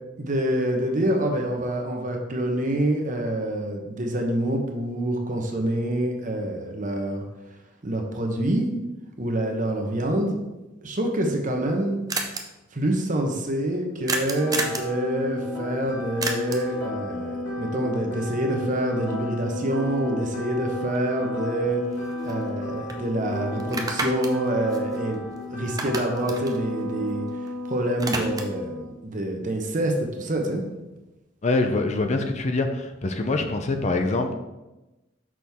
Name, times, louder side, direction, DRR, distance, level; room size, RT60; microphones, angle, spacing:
voice 1, 0.2-7.2 7.8-8.7 9.2-10.4 10.8-12.0 12.7-21.8 22.2-25.2 25.5-27.2 27.6-30.6, right 1 dB, 40° right, 2 dB, 0.9 m, -26 dB
sound 1, 11.1-11.2 11.4-11.5 11.7-11.8 12.1-12.4 14.1-14.9 16.2-16.7 20.9-21.0 21.4-22.6 22.9-23.0 23.6-25.4 25.7-27.5 27.8-28.6, right 3 dB, 20° right, 0.5 m, -31 dB
sound 2, 14.3-28.8, left 1 dB, 65° left, 2.0 m, -32 dB
voice 2, 31.4-34.3, left 2 dB, 35° left, 5 dB, 0.5 m, -24 dB
6.1 x 6.0 x 3.5 m, 1.0 s
head